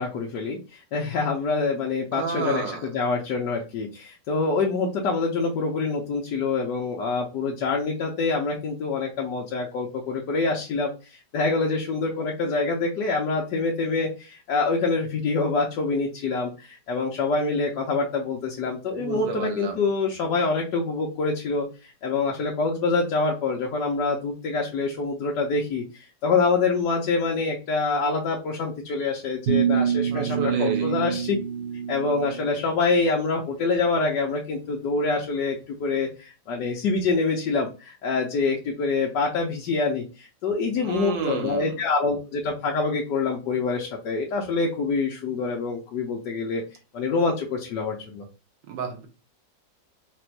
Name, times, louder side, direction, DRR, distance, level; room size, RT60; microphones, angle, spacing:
voice 1, 0.0-31.4 31.9-46.6 46.9-48.3, left 4 dB, 70° left, -1 dB, 1.4 m, -26 dB
voice 2, 2.1-2.8 19.0-19.8 30.1-31.0 40.8-41.7 48.7-49.1, right 6 dB, 85° right, 4 dB, 1.6 m, -31 dB
sound 1, 29.5-32.6, right 8 dB, 55° right, 0.6 m, -26 dB
4.1 x 2.6 x 4.5 m, 0.32 s
omnidirectional pair, 1.9 m